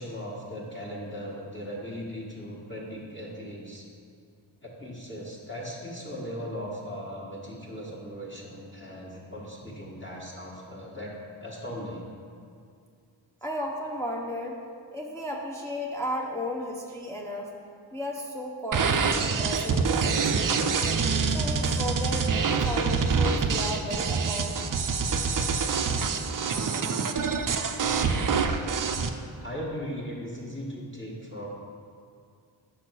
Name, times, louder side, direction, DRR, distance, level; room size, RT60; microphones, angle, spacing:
voice 1, 0.0-3.9 4.6-11.1 11.4-12.1 29.4-31.5, equal, 25° left, -4 dB, 1.3 m, -38 dB
voice 2, 13.4-14.6 14.9-17.5 17.9-20.9 21.3-24.6, equal, 5° left, -2 dB, 0.7 m, -34 dB
sound 1, 18.7-29.1, right 5 dB, 45° right, 0.5 m, -26 dB
5.6 x 4.3 x 6.2 m, 2.3 s
cardioid pair, 50°, 47 cm